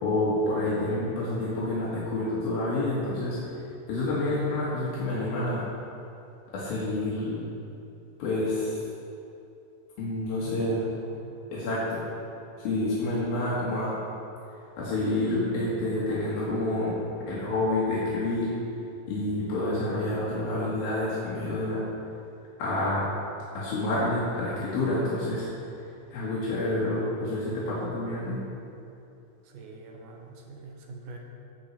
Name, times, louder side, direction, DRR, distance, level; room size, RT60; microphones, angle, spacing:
voice 1, 0.0-3.6 3.9-5.7 6.5-7.4 8.2-8.8 10.0-10.8 11.5-12.0 12.6-14.0 14.8-18.5 19.1-21.8 22.6-23.1 23.6-25.5 26.1-28.4, left 2 dB, 85° left, -8 dB, 3.9 m, -28 dB
voice 2, 10.4-11.4 29.4-31.2, right 3 dB, 70° right, 1 dB, 2.6 m, -44 dB
15.5 x 8.4 x 4.5 m, 2.8 s
omnidirectional pair, 4.1 m